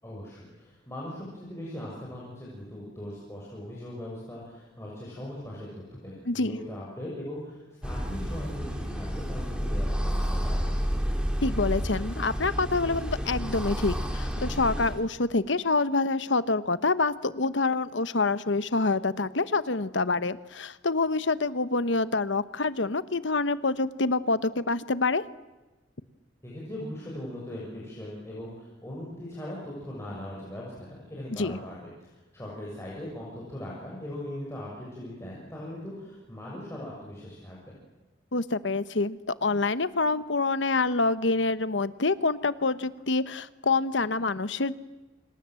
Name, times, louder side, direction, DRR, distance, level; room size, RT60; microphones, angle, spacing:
voice 1, 0.0-10.7 26.4-37.8, left 1 dB, 15° left, -5 dB, 6.8 m, -40 dB
voice 2, 6.3-6.6 11.4-25.2 31.3-31.6 38.3-44.7, left 3 dB, 75° left, 14 dB, 1.1 m, -26 dB
sound 1, 7.8-15.0, equal, 5° right, 3.5 m, -30 dB
29.0 x 26.5 x 7.7 m, 1.1 s
head